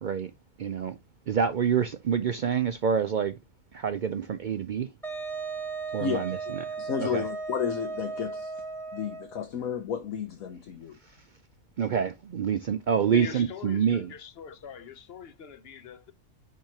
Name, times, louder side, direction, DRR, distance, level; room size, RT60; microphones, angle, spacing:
voice 1, 0.0-0.3 0.6-1.0 1.3-3.3 3.7-4.9 5.9-6.4 7.0-7.2 11.8-14.1, right 7 dB, 85° right, 0.4 m, -27 dB
Wind instrument woodwind instrument, 5.0-9.4, right 4 dB, ahead, 1.2 m, -36 dB
voice 2, 6.8-8.6 8.9-11.0, left 7 dB, 75° left, 1.2 m, -32 dB
voice 3, 13.1-16.1, left 7 dB, 55° left, 0.8 m, -42 dB
10.0 x 3.7 x 2.8 m
omnidirectional pair, 1.4 m